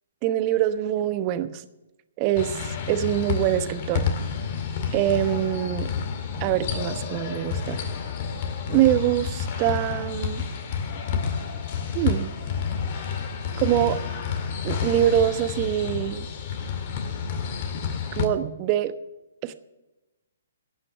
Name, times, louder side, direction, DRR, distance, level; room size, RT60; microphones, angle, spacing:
voice 1, 0.2-1.6 2.2-4.0 4.9-5.9 6.4-7.8 8.7-10.4 11.9-12.3 13.6-14.0 14.6-16.3 18.1-18.9 19.4-19.5, right 12 dB, 35° right, 11 dB, 1.0 m, -24 dB
sound 1, 2.4-18.2, left 6 dB, 45° left, 2.1 m, -30 dB
16.5 x 6.4 x 8.3 m, 1.0 s
hypercardioid pair, 135°, 0 cm